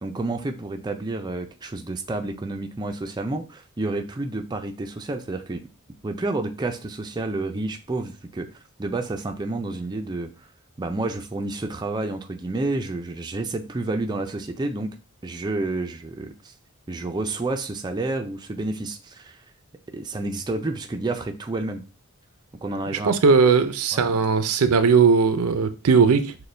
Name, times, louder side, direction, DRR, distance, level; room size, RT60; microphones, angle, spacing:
voice 1, 0.0-5.6 6.0-8.5 8.8-10.3 10.8-15.0 15.2-16.5 16.9-19.4 19.9-21.8 22.6-23.4 23.9-24.0, right 2 dB, 20° right, 0.4 m, -29 dB
voice 2, 23.1-26.4, right 5 dB, 75° right, 0.5 m, -18 dB
6.4 x 2.2 x 3.3 m
head